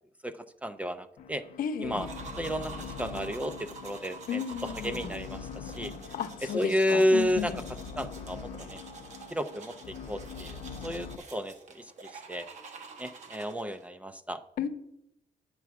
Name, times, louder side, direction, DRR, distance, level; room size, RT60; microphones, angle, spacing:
voice 1, 0.6-1.4 1.8-2.1 2.4-2.7 3.0-4.4 4.8-5.9 6.5-7.5 8.0-8.8 9.3-9.7 10.1-12.5 13.0-14.4, equal, 10° right, 11 dB, 0.3 m, -31 dB
sound 1, 1.2-11.2, left 6 dB, 55° left, 0.5 m, -43 dB
voice 2, 1.6-2.1 4.3-5.2 6.1-7.6 14.6-14.7, left 7 dB, 80° left, 9 dB, 0.8 m, -34 dB
sound 2, 1.9-13.9, right 4 dB, 55° right, 1.0 m, -48 dB
9.3 x 4.6 x 7.2 m, 0.81 s
cardioid pair, 175°, 14 cm